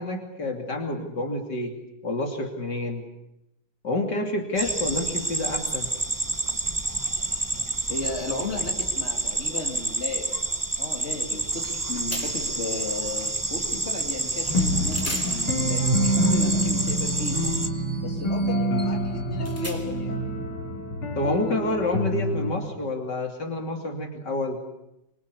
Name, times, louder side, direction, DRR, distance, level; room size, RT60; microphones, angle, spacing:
voice 1, 0.0-1.7 2.0-3.0 3.8-5.9 21.2-24.6, left 2 dB, 55° left, 2 dB, 3.5 m, -28 dB
sound 1, 4.6-17.7, right 2 dB, 15° right, 0.7 m, -29 dB
voice 2, 7.9-10.4 10.8-17.5 18.0-20.2, left 2 dB, 30° left, 1 dB, 3.2 m, -35 dB
sound 2, 11.6-11.8 12.1-12.6 14.4-14.6 14.9-20.2, equal, 5° left, 2.7 m, -40 dB
sound 3, 14.5-22.7, equal, 80° left, 4.0 m, -26 dB
24.5 x 24.5 x 8.4 m, 0.86 s
omnidirectional pair, 2.2 m